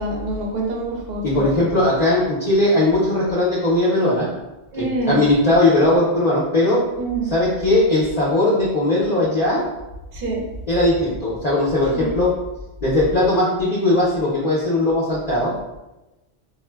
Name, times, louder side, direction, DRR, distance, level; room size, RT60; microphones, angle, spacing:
voice 1, 0.0-1.6 4.7-5.2 7.0-7.3 10.1-10.4 11.9-12.1, right 2 dB, 50° right, -1 dB, 0.7 m, -26 dB
voice 2, 1.2-4.3 4.7-6.8 7.3-9.6 10.7-12.3 12.8-15.5, left 1 dB, 45° left, -7 dB, 0.6 m, -19 dB
3.7 x 2.1 x 2.2 m, 1.0 s
omnidirectional pair, 1.3 m